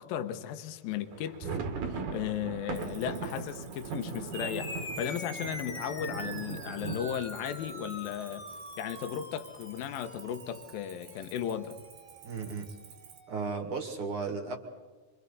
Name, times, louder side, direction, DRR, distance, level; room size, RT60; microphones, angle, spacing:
voice 1, 0.0-8.5 8.8-11.8, left 10 dB, 75° left, 2.7 m, -36 dB
sound 1, 1.1-8.8 9.1-9.2 9.5-9.7 10.2-10.7, right 5 dB, 60° right, 3.0 m, -39 dB
Cricket, 2.7-13.2, right 8 dB, 75° right, 3.6 m, -54 dB
sound 2, 4.3-13.2, left 1 dB, 20° left, 3.2 m, -44 dB
voice 2, 12.2-12.7 13.3-14.6, right 4 dB, 40° right, 2.7 m, -35 dB
28.5 x 25.5 x 4.1 m
omnidirectional pair, 4.4 m